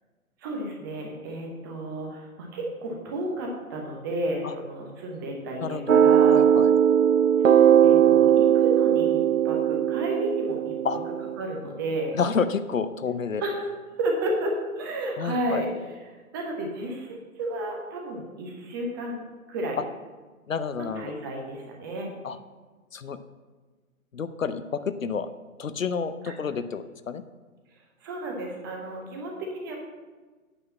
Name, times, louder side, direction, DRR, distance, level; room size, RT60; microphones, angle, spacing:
voice 1, 0.4-6.4 7.4-10.7 11.4-12.2 13.4-13.6 14.0-15.7 16.3-19.2 19.5-19.8 20.8-22.1 26.2-26.4 28.0-29.8, right 1 dB, 15° right, 0 dB, 0.8 m, -32 dB
voice 2, 5.6-6.0 6.3-6.7 10.8-11.0 12.1-13.4 15.2-15.6 20.5-21.1 22.2-22.4 22.9-23.2 24.1-25.3 25.6-27.2, left 6 dB, 65° left, 11 dB, 0.6 m, -29 dB
sound 1, 5.9-11.4, right 9 dB, 65° right, 0.5 m, -19 dB
8.7 x 4.7 x 7.0 m, 1.3 s
figure-of-eight pair, 130°, 43 cm